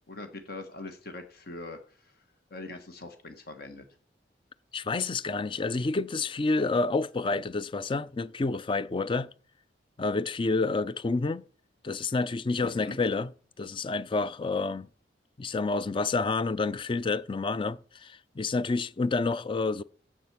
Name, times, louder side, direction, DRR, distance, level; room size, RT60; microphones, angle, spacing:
voice 1, 0.1-2.2 2.5-3.8 12.6-13.0, left 2 dB, 55° left, 1.4 m, -42 dB
voice 2, 4.7-9.3 10.0-11.4 11.8-13.3 13.6-14.9 15.4-19.8, left 3 dB, 25° left, 0.4 m, -29 dB
7.7 x 7.2 x 7.3 m
head